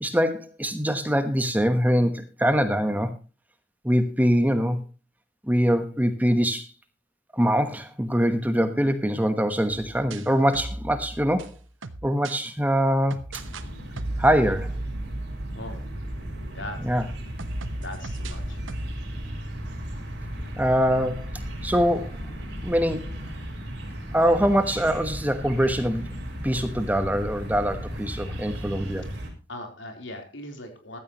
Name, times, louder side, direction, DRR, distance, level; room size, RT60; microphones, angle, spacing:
voice 1, 0.0-3.1 3.8-4.8 5.4-6.7 7.3-11.5 12.0-13.2 14.2-14.7 16.8-17.1 20.6-21.3 21.6-22.2 22.6-23.2 24.1-26.1 26.4-29.1, equal, 10° right, 9 dB, 1.1 m, -23 dB
sound 1, 9.7-12.4 13.1-13.7 14.0-17.0 17.4-19.0, right 2 dB, 80° right, 1.0 m, -36 dB
sound 2, 13.3-29.3, equal, 55° right, 4.2 m, -36 dB
voice 2, 15.5-15.8 16.3-16.9 17.8-18.6 28.8-28.9 29.5-31.0, left 1 dB, 75° left, 4 dB, 3.8 m, -39 dB
15.0 x 13.0 x 3.0 m, 0.31 s
head